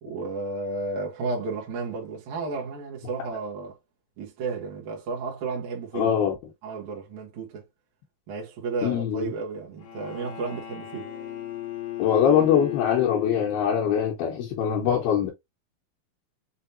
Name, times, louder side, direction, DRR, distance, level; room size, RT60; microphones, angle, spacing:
voice 1, 0.0-3.8 4.2-6.1 6.6-7.6 8.3-11.1, right 3 dB, 60° right, 2.4 m, -33 dB
voice 2, 5.9-6.4 8.8-9.3 12.0-15.3, left 8 dB, 85° left, 2.9 m, -23 dB
Bowed string instrument, 9.8-13.9, left 13 dB, 70° left, 2.9 m, -35 dB
6.7 x 3.0 x 2.7 m
omnidirectional pair, 4.2 m